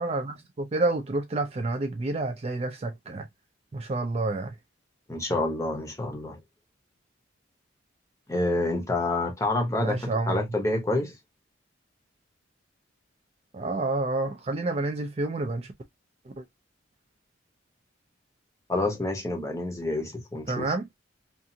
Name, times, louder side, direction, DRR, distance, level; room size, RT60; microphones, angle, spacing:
voice 1, 0.0-3.3 3.7-4.5 9.8-10.4 13.5-15.7 16.4-16.5 20.5-20.8, right 2 dB, 30° right, 0.3 m, -29 dB
voice 2, 5.1-6.4 8.3-11.2 18.7-20.7, left 2 dB, 15° left, 0.7 m, -28 dB
2.6 x 2.4 x 2.6 m
head